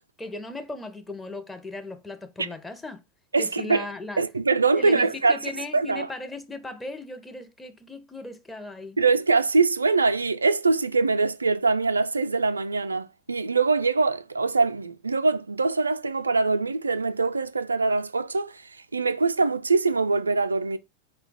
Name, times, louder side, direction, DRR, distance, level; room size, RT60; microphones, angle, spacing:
voice 1, 0.2-3.0 3.4-4.2 4.8-9.0, left 2 dB, 10° left, 0.7 m, -37 dB
voice 2, 3.3-3.8 4.2-5.4 5.7-6.1 9.0-20.8, right 4 dB, 75° right, 0.3 m, -23 dB
4.4 x 2.2 x 3.9 m
figure-of-eight pair, 90°, 0 cm